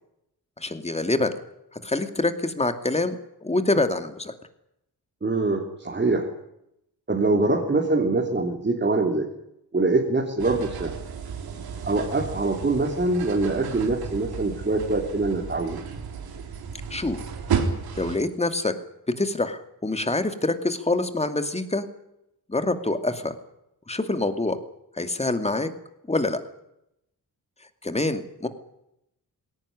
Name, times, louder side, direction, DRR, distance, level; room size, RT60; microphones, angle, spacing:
voice 1, 0.6-1.3 1.8-3.2 3.4-4.3 16.9-17.2 18.0-18.7 19.2-21.8 22.5-23.3 23.9-24.6 25.0-25.7 26.1-26.4 27.8-28.5, left 2 dB, 15° left, 8 dB, 2.4 m, -25 dB
voice 2, 5.2-6.3 7.1-9.3 9.7-10.9 11.8-15.8, right 3 dB, 30° right, -1 dB, 3.5 m, -24 dB
sound 1, 10.4-18.2, right 6 dB, 90° right, 3.8 m, -33 dB
20.0 x 18.0 x 9.9 m, 0.81 s
cardioid pair, 105°, 36 cm